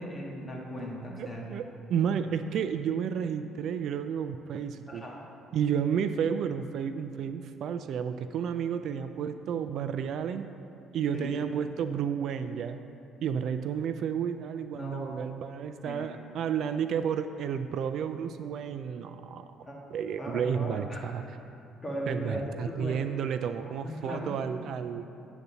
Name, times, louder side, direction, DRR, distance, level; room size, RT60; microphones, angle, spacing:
voice 1, 0.0-1.4 4.9-5.1 11.1-11.3 14.7-15.1 15.8-16.1 19.7-19.8 20.2-21.0 21.8-23.0 23.6-24.3, equal, 15° left, -3 dB, 1.6 m, -37 dB
voice 2, 1.2-5.0 5.5-10.5 10.9-12.8 13.2-19.4 19.9-21.2 22.1-25.0, right 7 dB, 60° right, 10 dB, 0.3 m, -31 dB
9.9 x 4.0 x 6.8 m, 2.8 s
cardioid pair, 125°, 0 cm